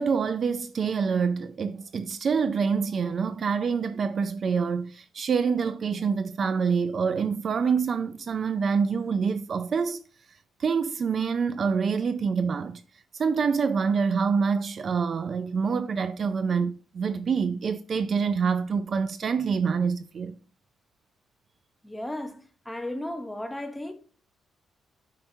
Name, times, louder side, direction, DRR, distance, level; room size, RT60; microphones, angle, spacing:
voice 1, 0.0-10.0 10.6-12.8 13.1-20.4, right 5 dB, 35° right, 0.4 m, -26 dB
voice 2, 21.8-23.9, left 1 dB, 5° left, 0.8 m, -35 dB
9.0 x 5.8 x 2.7 m
cardioid pair, 165°, 0 cm